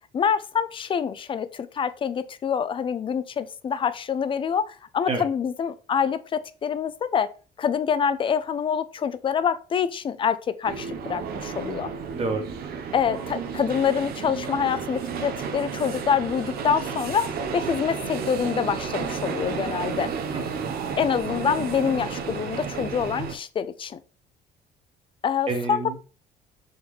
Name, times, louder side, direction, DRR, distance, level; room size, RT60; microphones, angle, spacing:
voice 1, 0.1-7.3 7.6-11.9 12.9-20.1 21.0-24.0 25.2-25.8, left 7 dB, 30° left, 13 dB, 0.3 m, -26 dB
sound 1, 10.6-23.4, right 6 dB, 65° right, 0.6 m, -32 dB
voice 2, 12.1-12.4 20.3-20.8 25.5-26.2, right 3 dB, 35° right, 4 dB, 1.2 m, -29 dB
3.9 x 3.0 x 3.4 m, 0.36 s
cardioid pair, 110°, 17 cm